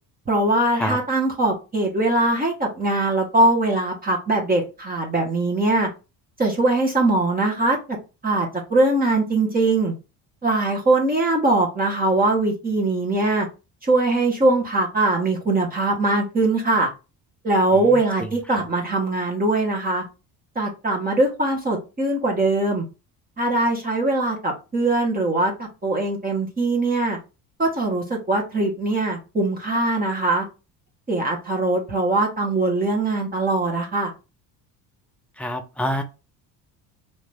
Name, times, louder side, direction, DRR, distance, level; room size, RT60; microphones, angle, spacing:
voice 1, 0.3-5.9 6.4-7.8 8.2-9.9 10.4-13.5 13.8-16.9 17.4-20.0 20.5-22.8 23.4-27.2 27.6-30.4 31.1-34.1, right 2 dB, 20° right, 1.1 m, -21 dB
voice 2, 17.8-18.7 35.4-36.0, equal, 5° left, 0.5 m, -28 dB
2.8 x 2.5 x 3.3 m
cardioid pair, 100°, 39 cm